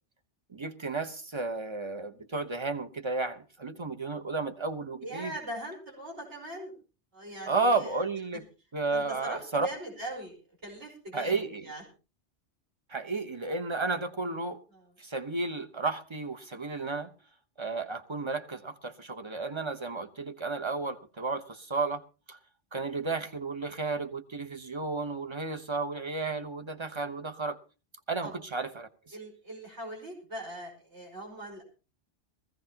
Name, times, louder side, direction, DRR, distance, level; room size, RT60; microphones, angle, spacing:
voice 1, 0.5-5.3 7.5-8.4 8.7-9.7 11.1-11.6 12.9-14.6 15.0-17.1 17.6-22.0 22.3-22.4 22.7-27.6 28.1-28.9, right 3 dB, 25° right, 0.9 m, -32 dB
voice 2, 5.0-6.7 7.1-8.0 8.9-11.8 14.7-14.9 28.2-28.3 29.1-31.6, right 1 dB, 75° right, 5.4 m, -41 dB
20.5 x 15.5 x 2.9 m
omnidirectional pair, 1.2 m